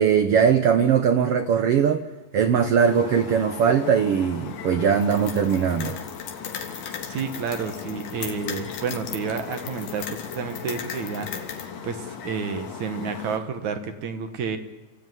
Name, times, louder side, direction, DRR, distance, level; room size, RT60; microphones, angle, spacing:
voice 1, 0.0-2.1 2.3-6.0, right 7 dB, 90° right, 8 dB, 1.3 m, -20 dB
sound 1, 2.8-13.4, left 7 dB, 55° left, 2.4 m, -38 dB
sound 2, 5.0-11.7, left 7 dB, 75° left, 3.7 m, -38 dB
voice 2, 7.1-14.6, right 5 dB, 60° right, 8 dB, 2.5 m, -30 dB
30.0 x 15.5 x 9.3 m, 1.1 s
omnidirectional pair, 4.1 m